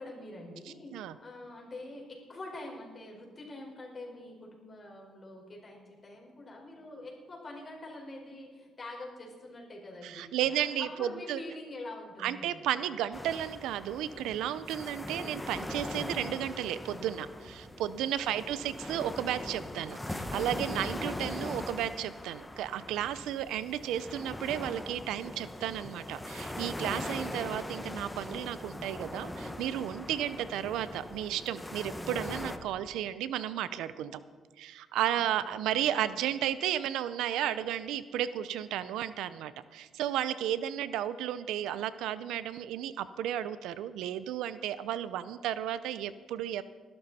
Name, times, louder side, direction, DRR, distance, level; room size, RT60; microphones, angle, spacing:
voice 1, 0.0-0.9 1.2-12.7 17.7-17.8 18.2-18.6 35.1-35.9, left 2 dB, 35° left, -1 dB, 4.9 m, -45 dB
voice 2, 10.0-11.4 12.2-34.2 34.6-46.6, right 11 dB, 90° right, 14 dB, 0.6 m, -33 dB
sound 1, 13.1-32.6, left 1 dB, 10° left, 1.2 m, -40 dB
19.5 x 12.0 x 4.2 m, 1.5 s
cardioid pair, 90°, 0 cm